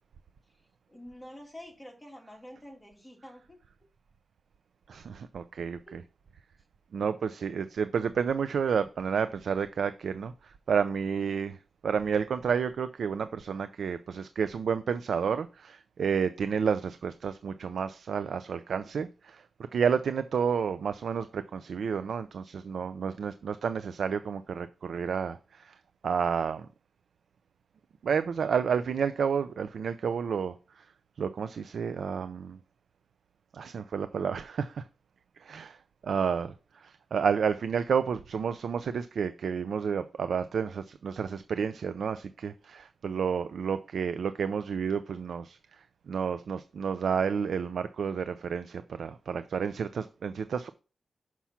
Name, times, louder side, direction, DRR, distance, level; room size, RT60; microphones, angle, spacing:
voice 1, 0.5-3.6 5.9-6.0, left 1 dB, 10° left, 2.3 m, -48 dB
voice 2, 4.9-6.0 6.9-11.6 11.8-19.5 19.7-25.8 26.0-26.7 28.0-30.9 31.2-32.6 33.5-34.8 35.4-35.8 36.0-50.7, right 6 dB, 80° right, 0.4 m, -30 dB
6.0 x 5.6 x 5.8 m
wide cardioid pair, 165°, 0 cm